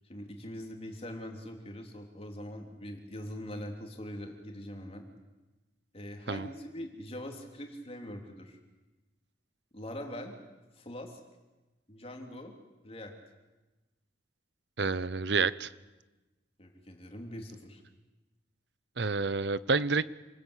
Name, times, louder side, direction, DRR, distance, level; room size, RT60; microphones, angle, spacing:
voice 1, 0.0-5.0 5.9-8.6 9.7-10.4 10.7-11.2 11.9-12.5 12.8-13.1 16.6-17.8, equal, 30° left, 3 dB, 3.4 m, -42 dB
voice 2, 14.8-15.7 19.0-20.1, right 4 dB, 65° right, 17 dB, 0.8 m, -29 dB
28.0 x 20.0 x 8.3 m, 1.1 s
head